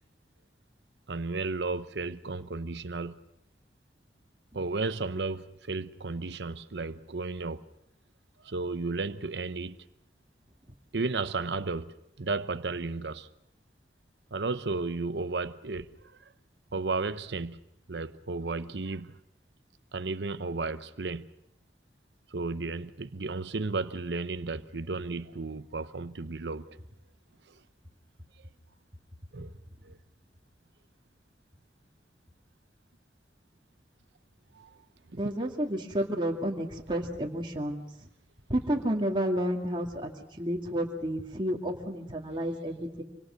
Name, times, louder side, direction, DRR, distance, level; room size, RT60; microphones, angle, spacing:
voice 1, 1.1-3.2 4.5-7.6 8.4-9.8 10.9-13.3 14.3-15.9 16.7-17.6 17.9-19.1 19.9-21.3 22.3-26.8 29.3-29.5 29.8-30.0 34.5-34.8, right 3 dB, 70° right, 0.8 m, -33 dB
voice 2, 35.1-38.1 38.5-43.0, equal, 25° right, 2.3 m, -31 dB
26.5 x 25.0 x 6.4 m
head